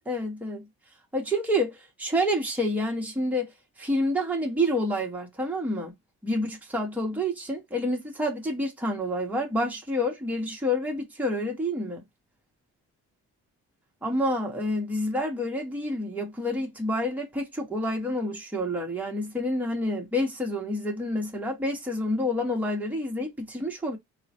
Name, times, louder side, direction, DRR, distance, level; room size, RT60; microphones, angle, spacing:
voice 1, 0.1-0.7 1.1-3.5 3.8-5.9 6.2-12.0 14.0-24.0, equal, 5° right, 1.0 m, -28 dB
3.7 x 2.2 x 2.8 m
cardioid pair, 90°, 30 cm